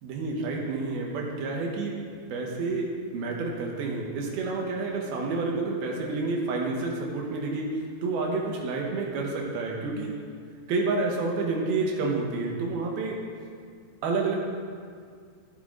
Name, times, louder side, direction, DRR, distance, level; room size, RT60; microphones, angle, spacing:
voice 1, 0.0-1.9 2.3-7.7 8.0-10.1 10.7-13.2 14.0-14.5, right 3 dB, 85° right, -1 dB, 3.2 m, -29 dB
13.5 x 9.2 x 3.8 m, 2.1 s
omnidirectional pair, 4.2 m